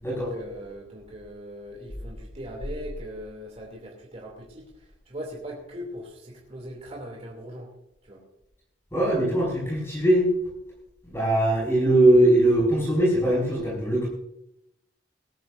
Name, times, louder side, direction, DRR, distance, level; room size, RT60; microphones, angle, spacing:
voice 1, 0.1-7.7 8.0-8.2, equal, 35° right, -1 dB, 2.7 m, -40 dB
voice 2, 8.9-10.3 11.0-14.1, right 1 dB, 15° left, -4 dB, 5.3 m, -21 dB
19.0 x 14.0 x 2.6 m, 0.81 s
head